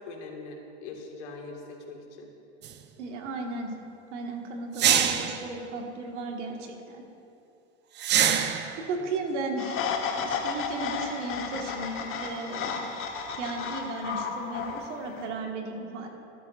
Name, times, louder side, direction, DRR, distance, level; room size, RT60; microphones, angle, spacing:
voice 1, 0.0-2.3 8.9-9.2, left 3 dB, 75° left, 1 dB, 1.9 m, -42 dB
sound 1, 2.6-2.7 4.8-5.4 8.0-8.8, right 9 dB, 30° right, 0.6 m, -24 dB
voice 2, 3.0-3.7 4.1-7.0 8.9-9.8 10.2-12.9 13.4-16.1, right 3 dB, 85° right, 1 dB, 1.7 m, -35 dB
sound 2, 9.6-15.3, left 6 dB, 35° left, 1.1 m, -33 dB
13.0 x 12.5 x 2.5 m, 2.7 s
supercardioid pair, 110°, 35 cm